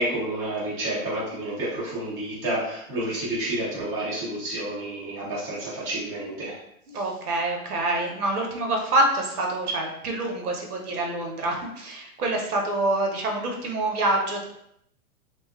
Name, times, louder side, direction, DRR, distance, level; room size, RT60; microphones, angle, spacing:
voice 1, 0.0-6.5, right 1 dB, 10° right, -9 dB, 0.3 m, -29 dB
voice 2, 6.9-14.4, right 2 dB, 85° right, 1 dB, 0.9 m, -26 dB
2.7 x 2.4 x 2.3 m, 0.76 s
hypercardioid pair, 125°, 44 cm